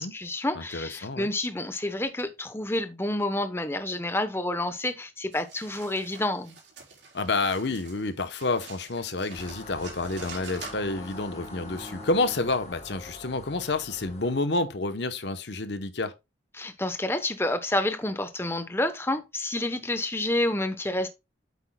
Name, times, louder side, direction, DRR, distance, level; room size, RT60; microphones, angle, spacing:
voice 1, 0.0-6.6 16.5-21.1, left 1 dB, 10° left, 0.8 m, -29 dB
voice 2, 0.6-1.3 7.1-16.1, left 3 dB, 60° left, 0.9 m, -29 dB
sound 1, 5.3-11.2, right 4 dB, 60° right, 4.0 m, -46 dB
Bowed string instrument, 9.0-13.6, equal, 20° right, 2.2 m, -49 dB
sound 2, 9.3-14.4, left 2 dB, 35° left, 1.8 m, -44 dB
8.8 x 8.1 x 2.2 m
head